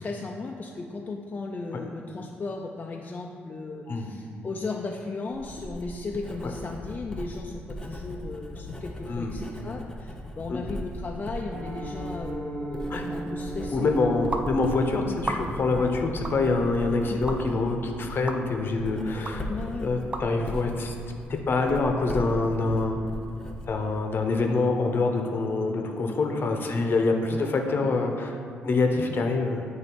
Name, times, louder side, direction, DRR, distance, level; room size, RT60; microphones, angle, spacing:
voice 1, 0.0-14.6 17.1-17.2 19.5-19.9, left 3 dB, 35° left, 0 dB, 0.4 m, -36 dB
Writing, 5.3-24.1, equal, 15° left, 0.9 m, -38 dB
Piano, 11.5-22.4 22.7-22.9 23.2-23.4 23.7-24.0 24.3-24.4, right 2 dB, 90° right, 1.4 m, -41 dB
voice 2, 13.7-19.5 19.8-20.9 21.5-23.0 23.7-28.4 28.6-29.7, left 3 dB, 50° left, 3 dB, 0.8 m, -25 dB
sound 1, 14.3-14.5 15.2-15.7 16.3-16.4 17.3-17.4 18.3-18.4 19.3-19.4 20.1-20.3, right 2 dB, 25° right, 0.5 m, -32 dB
7.8 x 3.1 x 4.5 m, 2.4 s
supercardioid pair, 70°, 5 cm